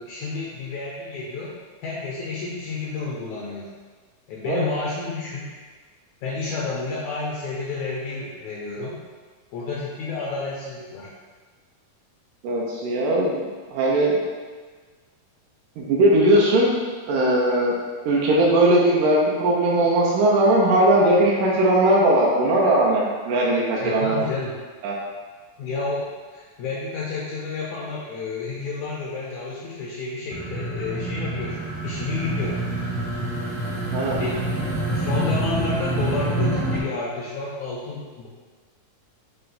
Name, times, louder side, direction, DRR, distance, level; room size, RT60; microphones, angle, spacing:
voice 1, 0.0-1.5 1.8-3.7 4.3-5.6 6.2-9.0 9.5-11.1 23.8-24.5 25.6-32.6 34.2-34.4 34.9-38.3, left 3 dB, 80° left, -5 dB, 1.7 m, -30 dB
voice 2, 12.4-13.3 13.7-14.2 15.8-16.8 17.1-17.8 18.1-24.2 24.8-25.0 33.9-34.2, right 1 dB, 80° right, -4 dB, 2.1 m, -19 dB
sound 1, 30.3-36.8, right 1 dB, 55° right, 1.3 m, -27 dB
5.6 x 2.2 x 3.9 m, 1.4 s
omnidirectional pair, 3.8 m